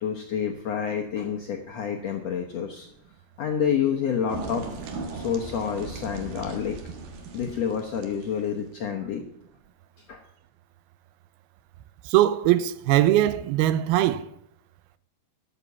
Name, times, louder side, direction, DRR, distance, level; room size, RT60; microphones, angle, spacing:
voice 1, 0.0-2.9 3.4-4.6 5.1-6.8 7.3-9.2 10.1-10.2, left 8 dB, 75° left, 1.5 m, -28 dB
sound 1, 4.3-8.6, right 3 dB, 65° right, 3.0 m, -38 dB
voice 2, 12.1-14.3, right 13 dB, 85° right, 2.6 m, -21 dB
12.5 x 8.2 x 7.1 m
omnidirectional pair, 4.4 m